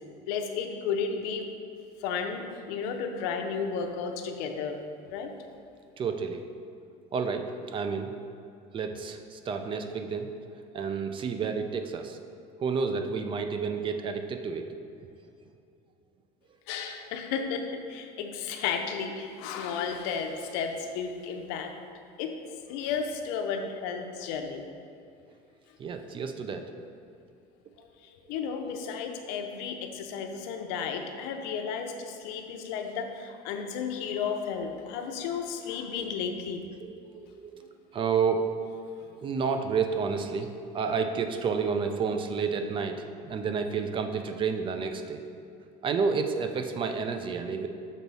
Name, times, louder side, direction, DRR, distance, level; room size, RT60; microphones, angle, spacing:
voice 1, 0.3-1.5 2.0-4.8 5.1-5.3 16.7-21.7 22.2-22.3 22.7-24.6 28.3-36.7, left 6 dB, 85° left, 5 dB, 0.7 m, -33 dB
voice 2, 6.0-6.5 7.1-8.1 8.7-12.2 12.6-14.7 25.8-26.7 36.0-36.1 36.8-38.5 39.0-45.2 45.8-47.7, right 5 dB, 30° right, 6 dB, 0.5 m, -30 dB
6.3 x 4.0 x 5.4 m, 2.6 s
cardioid pair, 140°, 16 cm